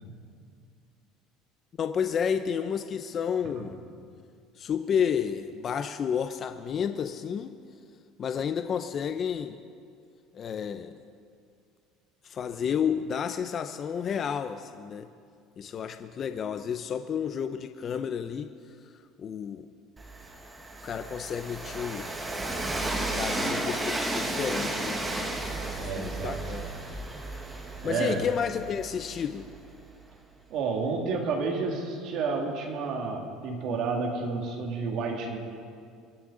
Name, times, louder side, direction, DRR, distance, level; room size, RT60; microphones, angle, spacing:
voice 1, 1.8-3.8 4.6-7.5 8.2-9.6 10.3-10.9 12.2-15.1 15.6-18.5 19.2-19.7 20.8-22.1 23.1-25.0 25.6-26.7 27.8-29.5, left 7 dB, 25° left, 8 dB, 0.4 m, -31 dB
Train, 20.0-29.8, right 2 dB, 10° right, 1.1 m, -33 dB
voice 2, 25.8-26.6 27.8-28.4 30.5-35.4, right 4 dB, 45° right, 1 dB, 1.9 m, -30 dB
24.5 x 10.5 x 3.7 m, 2.3 s
cardioid pair, 180°, 0 cm